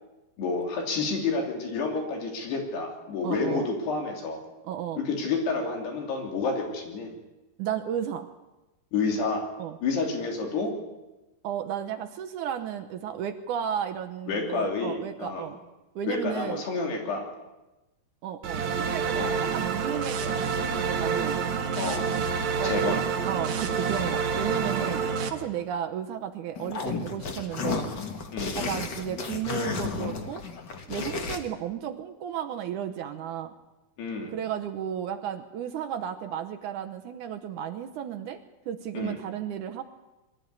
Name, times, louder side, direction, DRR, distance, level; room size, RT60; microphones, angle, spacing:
voice 1, 0.4-4.4 5.0-7.1 8.9-9.4 9.8-10.7 14.3-15.5 16.1-17.3 19.1-19.4 21.8-22.1 22.6-23.0 24.7-25.0 28.3-28.6 34.0-34.3 38.9-39.2, left 4 dB, 85° left, 2 dB, 5.1 m, -29 dB
voice 2, 3.2-3.7 4.6-5.0 7.6-8.3 9.6-9.8 11.4-15.6 16.0-16.6 18.2-21.4 22.6-25.0 25.3-27.9 28.5-30.4 30.9-33.5 34.3-38.4 38.7-39.8, right 9 dB, 75° right, 8 dB, 1.9 m, -33 dB
sound 1, 18.4-25.3, right 6 dB, 55° right, 2.4 m, -28 dB
sound 2, 26.6-31.4, left 5 dB, 65° left, 1.0 m, -33 dB
23.0 x 13.0 x 9.6 m, 1.0 s
omnidirectional pair, 4.6 m